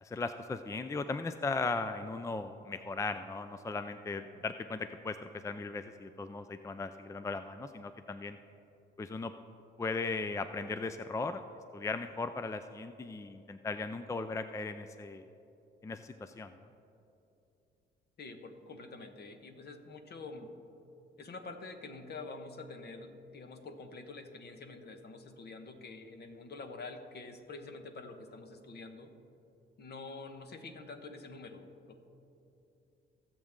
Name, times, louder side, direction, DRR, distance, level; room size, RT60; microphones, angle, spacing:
voice 1, 0.0-8.4 9.0-9.3 9.8-11.4 11.7-15.2 15.8-16.6, left 3 dB, 15° left, 10 dB, 0.4 m, -37 dB
voice 2, 18.2-20.5 21.2-29.1 29.8-32.0, left 3 dB, 55° left, 6 dB, 1.3 m, -47 dB
22.0 x 7.4 x 3.7 m, 2.8 s
cardioid pair, 90°, 20 cm